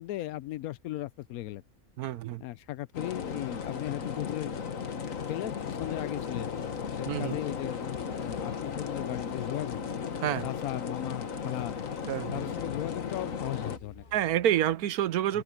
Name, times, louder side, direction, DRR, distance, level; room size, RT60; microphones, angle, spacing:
voice 1, 0.0-1.6 2.4-4.6 5.3-9.8 10.4-11.8 12.3-14.0 15.3-15.4, left 15 dB, 75° left, 1.0 m, -37 dB
voice 2, 2.0-2.4 7.1-7.4 10.2-10.5 12.1-12.4 14.1-15.4, right 12 dB, 90° right, 1.2 m, -28 dB
sound 1, 2.9-13.8, left 6 dB, 60° left, 1.7 m, -36 dB
sound 2, 5.0-14.8, left 3 dB, 35° left, 1.4 m, -54 dB
omnidirectional pair, 1.6 m